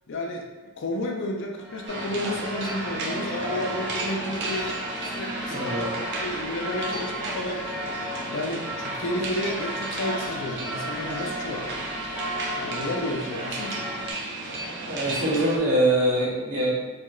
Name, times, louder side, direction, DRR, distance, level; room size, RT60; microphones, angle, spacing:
voice 1, 0.1-0.5 0.8-4.8 5.0-7.6 8.3-11.7 12.6-13.9, left 1 dB, 55° left, 1 dB, 0.5 m, -31 dB
sound 1, 1.6-14.1, equal, 5° right, 0.5 m, -35 dB
sound 2, 1.9-15.6, right 2 dB, 50° right, 0.4 m, -34 dB
voice 2, 5.5-5.9 14.9-16.9, right 1 dB, 75° right, -7 dB, 1.2 m, -24 dB
2.9 x 2.9 x 2.4 m, 1.2 s
head